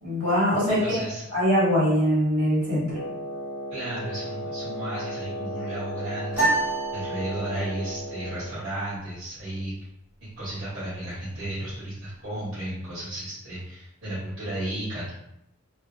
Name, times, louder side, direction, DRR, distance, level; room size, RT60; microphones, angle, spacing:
voice 1, 0.0-1.0 1.3-2.9, equal, 85° right, -8 dB, 1.5 m, -22 dB
voice 2, 0.7-1.2 3.7-9.7 10.2-15.1, right 1 dB, 60° right, -12 dB, 1.1 m, -34 dB
Wind instrument woodwind instrument, 2.9-8.6, equal, 75° left, 0.5 m, -35 dB
sound 1, 6.3-7.8, right 2 dB, 10° right, 1.1 m, -27 dB
2.7 x 2.4 x 2.4 m, 0.80 s
head